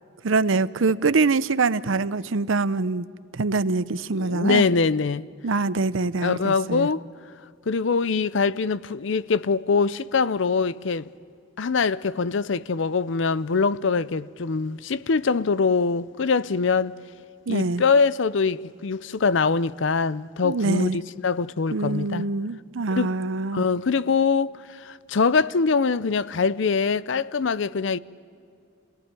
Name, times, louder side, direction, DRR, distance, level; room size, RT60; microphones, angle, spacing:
voice 1, 0.2-3.1 3.3-4.7 5.4-6.9 17.5-17.8 20.4-21.0 21.7-23.6, right 3 dB, 75° right, 0.7 m, -24 dB
voice 2, 4.1-5.3 6.2-7.0 7.7-11.1 11.6-17.0 17.5-22.2 22.9-23.1 23.5-28.0, left 4 dB, 65° left, 0.6 m, -23 dB
27.5 x 18.0 x 9.7 m
head